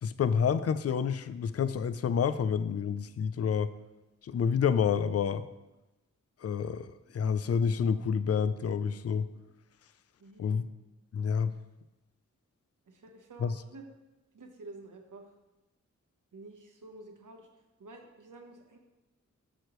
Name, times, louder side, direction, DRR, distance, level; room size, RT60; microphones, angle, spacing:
voice 1, 0.0-3.7 4.2-5.5 6.4-9.3 10.4-10.7 11.1-11.5 13.4-13.5, left 7 dB, 50° left, 14 dB, 0.4 m, -28 dB
voice 2, 10.2-10.6 12.9-13.8 14.3-15.3 16.3-17.5 17.8-18.8, right 2 dB, 75° right, 3 dB, 1.1 m, -50 dB
8.9 x 6.6 x 3.1 m, 1.0 s
cardioid pair, 65°, 31 cm